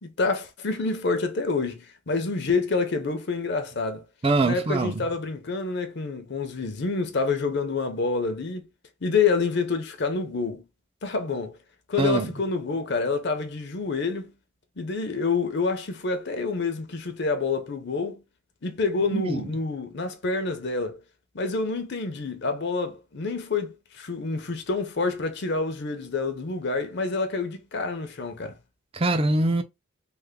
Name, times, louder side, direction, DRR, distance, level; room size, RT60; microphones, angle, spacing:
voice 1, 0.0-4.0 4.4-8.7 9.0-10.6 11.0-11.6 11.9-14.3 14.8-18.2 18.6-21.0 21.3-28.6, left 4 dB, 50° left, 0.6 m, -27 dB
voice 2, 4.2-5.1 12.0-12.3 19.1-19.4 28.9-29.6, right 2 dB, 25° right, 0.4 m, -23 dB
3.3 x 2.1 x 3.6 m
head